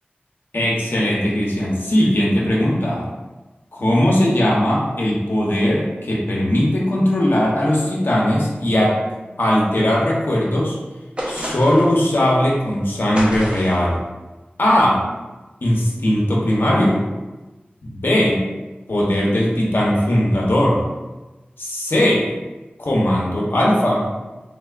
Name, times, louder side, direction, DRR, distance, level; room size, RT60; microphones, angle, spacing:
voice 1, 0.5-3.1 3.7-9.0 9.4-10.8 11.3-14.0 14.6-15.0 15.6-17.1 17.9-18.4 18.9-20.8 21.6-22.2 22.8-24.1, left 1 dB, 75° left, -4 dB, 0.9 m, -18 dB
sound 1, 11.2-12.0 13.1-13.9, equal, 30° right, 0.8 m, -28 dB
3.6 x 3.3 x 2.5 m, 1.1 s
wide cardioid pair, 55°, 4 cm